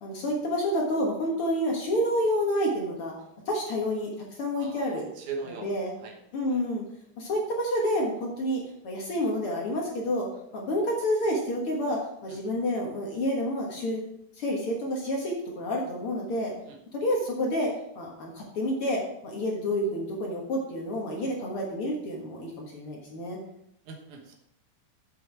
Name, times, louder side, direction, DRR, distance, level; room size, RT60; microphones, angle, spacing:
voice 1, 0.0-3.1 3.5-4.1 4.4-5.1 5.5-6.0 6.3-6.8 7.2-10.3 10.5-14.0 14.4-16.5 16.9-17.7 18.0-23.4, equal, 50° left, -1 dB, 2.0 m, -29 dB
voice 2, 4.6-5.7 6.0-6.1 16.7-16.8 23.9-24.3, right 5 dB, 75° right, 1 dB, 2.6 m, -39 dB
7.0 x 7.0 x 4.6 m, 0.76 s
omnidirectional pair, 3.6 m